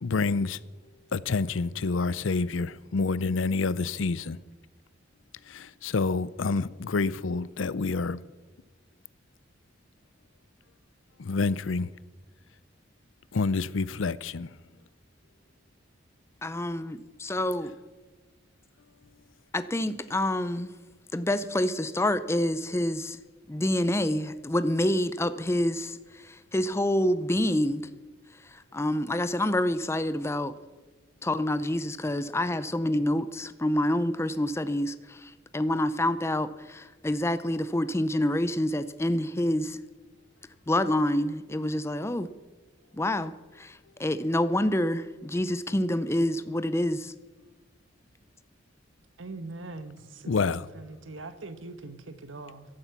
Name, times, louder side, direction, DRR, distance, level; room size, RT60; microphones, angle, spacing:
voice 1, 0.0-0.6 1.1-4.4 5.5-8.2 11.2-11.9 13.3-14.5 50.3-50.7, left 4 dB, 85° left, 0.6 m, -28 dB
voice 2, 16.4-17.7 19.5-20.7 21.1-23.2 23.5-26.0 26.2-27.8 28.7-30.5 31.2-39.8 40.7-42.3 43.0-47.1, left 1 dB, 15° left, 0.5 m, -27 dB
voice 3, 49.2-52.7, right 3 dB, 85° right, 1.2 m, -42 dB
15.0 x 11.5 x 5.9 m
head